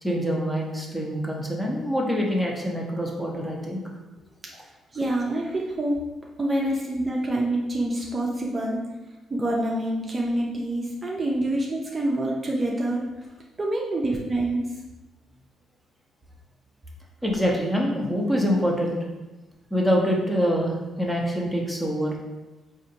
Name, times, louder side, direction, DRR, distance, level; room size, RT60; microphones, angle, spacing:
voice 1, 0.0-3.8 17.2-19.0 19.7-22.2, equal, 5° left, -2 dB, 0.7 m, -25 dB
voice 2, 4.9-6.0 6.4-8.8 9.3-13.0 13.6-14.6, right 1 dB, 30° right, -2 dB, 0.5 m, -26 dB
4.2 x 2.5 x 2.8 m, 1.1 s
cardioid pair, 90°, 0 cm